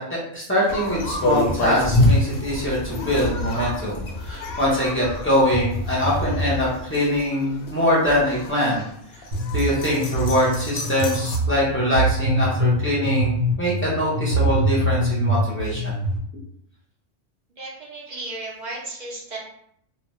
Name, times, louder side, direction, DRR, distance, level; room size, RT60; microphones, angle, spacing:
voice 1, 0.0-8.9 9.1-9.2 9.5-16.0, left 1 dB, 15° left, -8 dB, 0.6 m, -23 dB
sound 1, 0.7-11.4, left 1 dB, 65° left, 0.7 m, -27 dB
sound 2, 9.3-16.2, right 1 dB, 70° right, 1.0 m, -24 dB
voice 2, 17.6-19.4, right 2 dB, 45° right, -4 dB, 0.7 m, -34 dB
2.4 x 2.2 x 3.0 m, 0.70 s
omnidirectional pair, 1.2 m